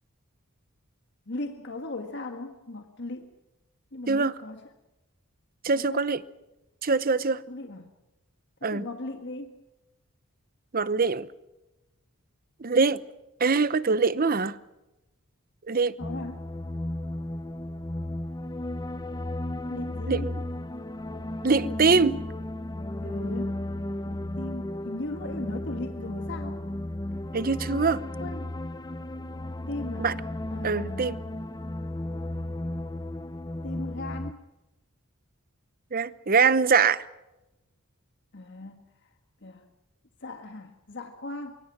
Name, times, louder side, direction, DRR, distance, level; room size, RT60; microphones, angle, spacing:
voice 1, 1.3-3.3 3.9-4.7 5.7-6.1 7.4-7.9 8.6-9.6 16.0-16.4 19.7-20.3 21.6-22.2 23.0-23.6 24.0-26.6 27.7-28.5 29.7-30.1 30.5-31.2 33.6-34.4 38.3-39.1 39.4-39.7 40.2-41.6, left 2 dB, 55° left, 1.6 m, -38 dB
voice 2, 5.6-6.2 6.8-7.4 8.6-8.8 10.7-11.3 12.6-13.0 13.4-14.6 15.7-15.9 20.1-20.4 21.4-22.2 27.3-28.0 30.0-30.1 30.6-31.2 35.9-37.0, right 4 dB, 40° right, 0.8 m, -23 dB
sound 1, 16.0-34.3, left 1 dB, 20° left, 0.7 m, -34 dB
24.0 x 24.0 x 6.0 m
head